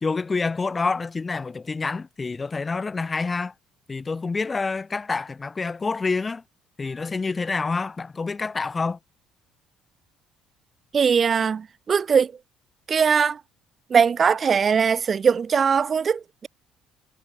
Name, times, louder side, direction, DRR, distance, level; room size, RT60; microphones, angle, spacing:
voice 1, 0.0-3.5 3.9-6.4 6.8-9.0, left 4 dB, 20° left, 3.1 m, -27 dB
voice 2, 10.9-12.3 12.9-13.4 13.9-16.5, right 6 dB, 30° right, 0.6 m, -20 dB
cardioid pair, 140°, 0 cm